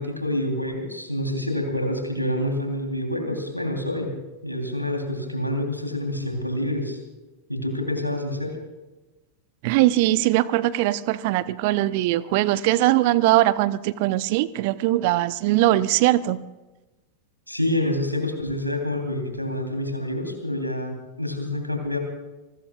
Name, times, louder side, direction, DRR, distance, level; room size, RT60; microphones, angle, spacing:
voice 1, 0.0-4.1 4.4-7.0 7.5-8.6 17.5-22.0, left 1 dB, 90° left, 4 dB, 3.2 m, -27 dB
voice 2, 9.6-16.4, right 16 dB, 50° right, 17 dB, 0.7 m, -21 dB
28.5 x 20.5 x 2.3 m, 1.1 s
figure-of-eight pair, 90°, 0 cm